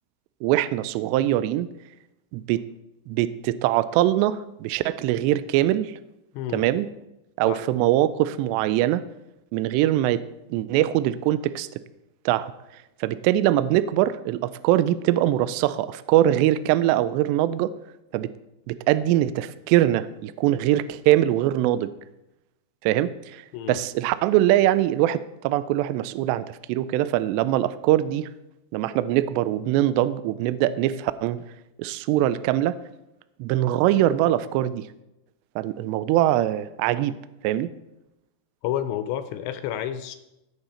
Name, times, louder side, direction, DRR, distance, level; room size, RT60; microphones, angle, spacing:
voice 1, 0.4-1.7 2.3-2.6 3.1-5.9 6.5-6.9 7.4-9.0 9.5-10.2 10.5-11.7 12.3-12.5 13.0-17.7 18.1-18.3 18.7-21.9 22.8-23.4 23.7-28.3 28.7-31.4 31.8-32.8 33.4-34.8 35.6-37.2 37.4-37.7, right 13 dB, 85° right, 14 dB, 2.5 m, -22 dB
voice 2, 38.6-40.2, left 10 dB, 80° left, 10 dB, 2.8 m, -30 dB
17.0 x 6.8 x 4.3 m, 0.92 s
omnidirectional pair, 5.4 m